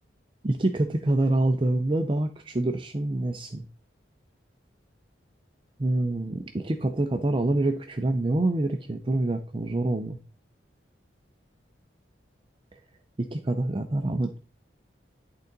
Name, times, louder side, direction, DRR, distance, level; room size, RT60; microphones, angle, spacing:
voice 1, 0.4-3.7 5.8-10.2 13.2-14.4, right 2 dB, 30° right, 6 dB, 0.5 m, -26 dB
11.0 x 3.9 x 3.9 m, 0.35 s
head